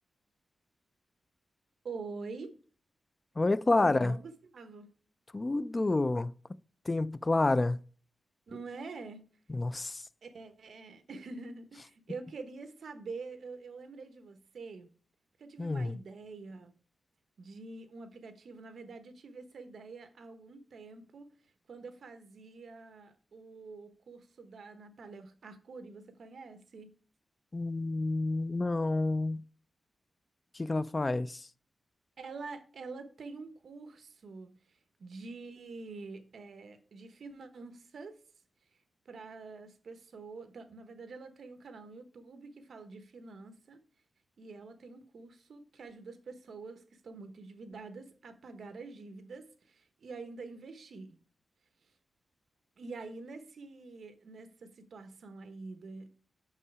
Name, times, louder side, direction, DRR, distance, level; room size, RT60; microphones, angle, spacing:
voice 1, 1.8-2.5 3.8-4.9 8.5-9.2 10.2-14.9 15.4-16.7 17.4-21.3 21.7-26.9 32.2-38.2 39.0-43.8 44.4-51.2 52.8-56.1, right 4 dB, 65° right, 1.1 m, -46 dB
voice 2, 3.4-4.1 5.3-6.3 6.9-7.8 9.5-10.0 15.6-16.0 27.5-29.4 30.5-31.5, left 2 dB, 25° left, 0.3 m, -29 dB
6.4 x 5.5 x 4.7 m
wide cardioid pair, 135°, 0 cm